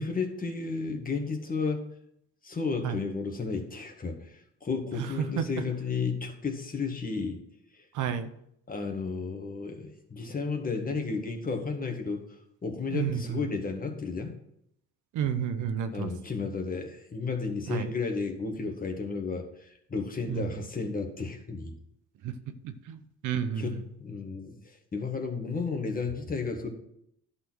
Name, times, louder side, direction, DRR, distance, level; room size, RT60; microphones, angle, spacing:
voice 1, 0.0-1.8 2.4-7.4 7.8-7.9 8.7-12.2 12.6-14.3 15.9-21.7 23.6-26.7, left 4 dB, 30° left, 4 dB, 1.6 m, -33 dB
voice 2, 4.9-5.5 7.9-8.3 12.9-13.4 15.1-16.1 17.7-17.9 20.3-20.5 22.2-22.3 22.6-23.8, right 8 dB, 80° right, 10 dB, 0.8 m, -31 dB
11.0 x 4.2 x 6.1 m, 0.75 s
cardioid pair, 90°, 30 cm